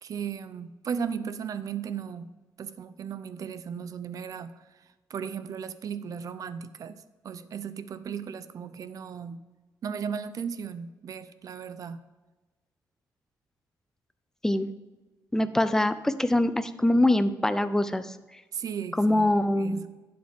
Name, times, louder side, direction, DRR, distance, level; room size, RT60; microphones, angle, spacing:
voice 1, 0.0-4.6 5.1-9.4 9.8-12.0 18.5-19.3 19.6-19.9, right 7 dB, 55° right, 13 dB, 0.6 m, -36 dB
voice 2, 15.3-18.2 19.0-19.8, left 1 dB, 5° left, 11 dB, 0.5 m, -24 dB
11.5 x 7.8 x 3.7 m, 1.2 s
cardioid pair, 140°, 7 cm